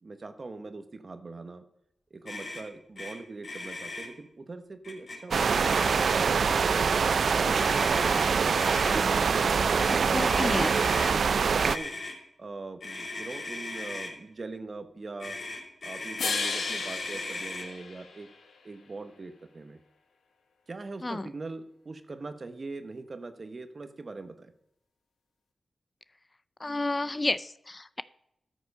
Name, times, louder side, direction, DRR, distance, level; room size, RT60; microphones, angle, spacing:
voice 1, 0.0-1.6 2.1-8.4 8.9-10.7 11.1-11.9 12.4-15.4 15.8-18.3 18.6-19.8 20.7-24.5, right 3 dB, 50° right, 9 dB, 1.1 m, -42 dB
Motor vehicle (road), 2.3-2.6 3.0-3.1 3.4-4.1 4.8-5.2 5.5-6.4 7.6-9.0 9.7-11.2 11.6-12.1 12.8-14.1 15.2-17.7, left 2 dB, 60° left, 3.3 m, -38 dB
sound 1, 5.3-11.8, right 5 dB, 75° right, 0.3 m, -24 dB
voice 2, 9.9-10.7 21.0-21.3 26.6-28.0, left 2 dB, 30° left, 16 dB, 0.4 m, -31 dB
sound 2, 16.2-18.5, left 5 dB, 90° left, 1.2 m, -34 dB
13.0 x 6.2 x 5.4 m, 0.79 s
cardioid pair, 60°, 0 cm